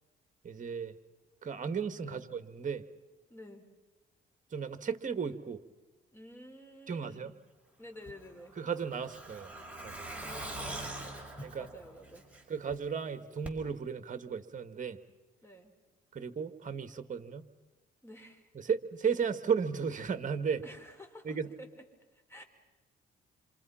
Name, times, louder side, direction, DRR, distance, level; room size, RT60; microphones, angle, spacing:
voice 1, 0.4-0.9 1.4-2.9 4.5-5.6 6.9-7.3 8.6-9.5 9.8-10.1 11.4-11.7 12.5-15.0 16.1-17.5 18.6-20.6 21.2-21.5, right 6 dB, 40° right, 11 dB, 1.8 m, -34 dB
voice 2, 3.3-3.6 6.1-7.3 7.8-8.6 10.1-10.8 11.6-12.3 15.4-15.7 18.0-18.5 20.6-21.7 22.1-22.4, equal, 10° left, 4 dB, 4.5 m, -51 dB
Truck, 8.1-12.7 13.0-13.1 13.5-13.6, right 1 dB, 5° right, 5.4 m, -43 dB
28.0 x 26.5 x 5.8 m, 1.2 s
cardioid pair, 90°, 20 cm